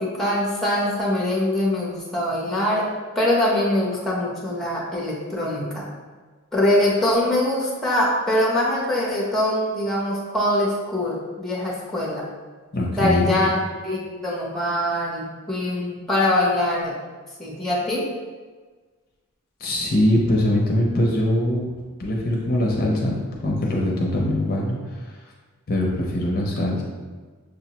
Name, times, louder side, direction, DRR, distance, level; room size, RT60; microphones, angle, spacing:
voice 1, 0.0-2.9 3.1-5.8 6.5-12.2 13.0-16.9 17.4-18.1, left 1 dB, ahead, -5 dB, 0.8 m, -23 dB
voice 2, 12.7-13.3 19.6-21.7 22.0-25.0 25.7-26.8, left 1 dB, 45° left, -2 dB, 0.6 m, -22 dB
6.4 x 2.1 x 2.8 m, 1.4 s
head